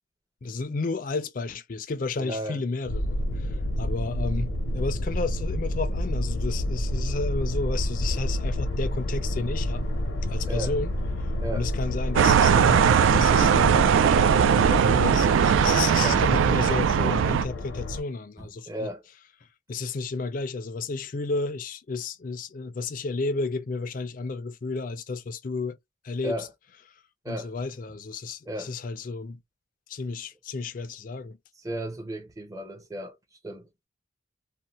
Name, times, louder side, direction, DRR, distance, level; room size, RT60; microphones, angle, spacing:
voice 1, 0.4-9.8 10.2-10.9 11.5-13.9 14.2-18.9 19.7-25.8 26.0-26.5 27.3-29.4 29.9-31.4, left 3 dB, 45° left, 0.4 m, -32 dB
voice 2, 2.2-2.6 10.5-10.7 11.4-11.7 14.8-15.0 15.6-16.2 18.4-19.0 26.2-26.5 27.2-27.5 28.5-28.7 31.6-33.2 33.4-33.7, equal, 15° right, 0.6 m, -35 dB
sound 1, 2.8-18.0, left 1 dB, 90° left, 0.7 m, -29 dB
sound 2, 12.2-17.5, right 7 dB, 85° right, 0.3 m, -20 dB
2.6 x 2.1 x 2.9 m
head